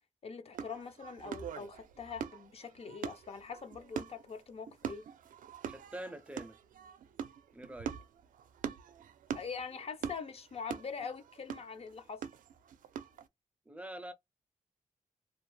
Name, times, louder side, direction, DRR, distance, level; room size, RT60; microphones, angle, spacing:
voice 1, 0.2-5.1 9.3-12.2, left 5 dB, 50° left, 0.5 m, -43 dB
sound 1, 0.5-13.3, right 8 dB, 90° right, 0.4 m, -43 dB
voice 2, 5.7-6.6 7.5-8.0 13.7-14.1, right 1 dB, 10° right, 0.4 m, -45 dB
2.4 x 2.0 x 3.1 m
wide cardioid pair, 110°, 13 cm